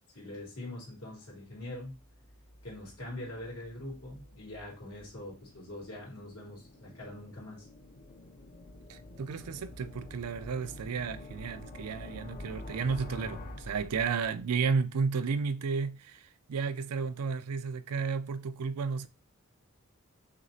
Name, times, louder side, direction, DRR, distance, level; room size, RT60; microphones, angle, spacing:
voice 1, 0.1-2.0 2.6-7.7, left 1 dB, 75° left, 2.6 m, -43 dB
sound 1, 1.9-14.6, left 2 dB, 40° left, 0.5 m, -48 dB
voice 2, 8.9-19.1, right 5 dB, 90° right, 0.4 m, -33 dB
6.2 x 2.8 x 2.7 m
head